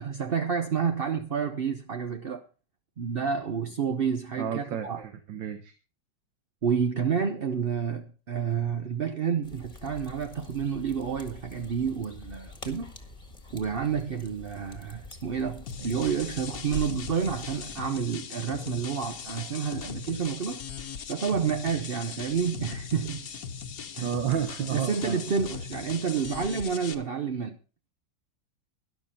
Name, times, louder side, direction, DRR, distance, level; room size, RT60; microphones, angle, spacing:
voice 1, 0.0-2.4 3.0-5.0 6.6-12.9 13.5-20.6 21.1-23.3 23.9-24.1 24.7-27.6, right 6 dB, 55° right, 0.6 m, -29 dB
voice 2, 4.4-5.7 24.0-25.2, right 9 dB, 85° right, 1.8 m, -31 dB
sound 1, 9.4-17.8, left 2 dB, 20° left, 1.6 m, -47 dB
sound 2, 15.7-26.9, left 6 dB, 55° left, 1.4 m, -39 dB
sound 3, 16.0-18.6 18.9-21.0 21.6-24.0 24.6-24.9, right 2 dB, 35° right, 1.4 m, -46 dB
12.5 x 11.5 x 4.2 m
omnidirectional pair, 2.0 m